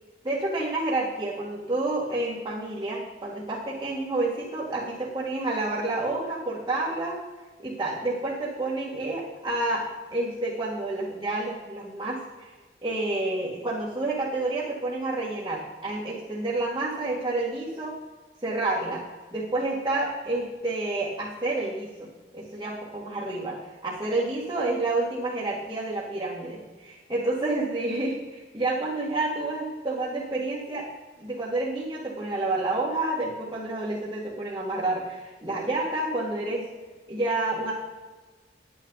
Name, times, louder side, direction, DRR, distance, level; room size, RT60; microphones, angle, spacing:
voice 1, 0.2-7.2 7.6-9.9 10.1-12.5 12.8-17.9 18.4-19.0 19.3-22.1 22.3-23.6 23.8-30.9 31.2-36.7 37.1-37.7, right 2 dB, 20° right, -8 dB, 1.8 m, -29 dB
10.5 x 9.5 x 4.0 m, 1.3 s
head